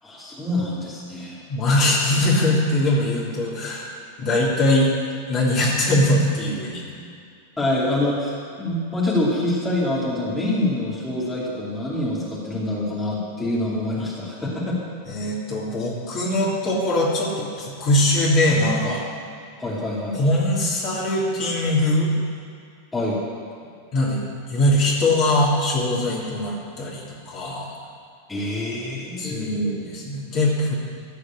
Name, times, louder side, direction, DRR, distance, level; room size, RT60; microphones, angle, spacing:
voice 1, 0.0-1.4 7.6-14.8 19.6-20.2 22.9-23.2 28.3-29.7, left 1 dB, 10° left, -7 dB, 2.9 m, -26 dB
voice 2, 1.5-3.9 4.2-4.9 5.3-6.9 15.1-19.0 20.1-22.1 23.9-27.7 29.2-30.7, left 1 dB, 35° left, -5 dB, 3.2 m, -21 dB
14.5 x 5.1 x 9.0 m, 2.3 s
figure-of-eight pair, 90°, 0 cm